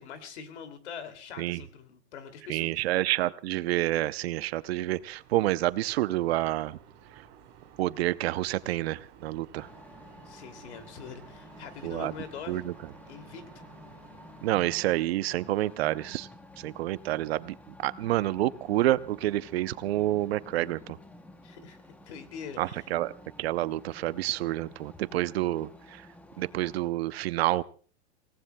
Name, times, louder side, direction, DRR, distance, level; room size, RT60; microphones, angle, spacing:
voice 1, 0.0-2.8 10.2-12.6 13.1-13.6 21.4-22.8, left 6 dB, 75° left, 9 dB, 2.7 m, -43 dB
voice 2, 2.5-6.8 7.8-9.7 11.8-12.1 12.5-12.7 14.4-16.3 16.6-17.6 17.8-21.0 22.6-23.1 23.4-26.1 26.4-27.6, right 15 dB, 60° right, 16 dB, 0.7 m, -28 dB
sound 1, 3.9-14.6, right 8 dB, 40° right, 6.9 m, -55 dB
sound 2, 9.5-26.9, left 2 dB, 5° left, 0.8 m, -51 dB
28.5 x 18.0 x 2.2 m, 0.41 s
supercardioid pair, 155°, 34 cm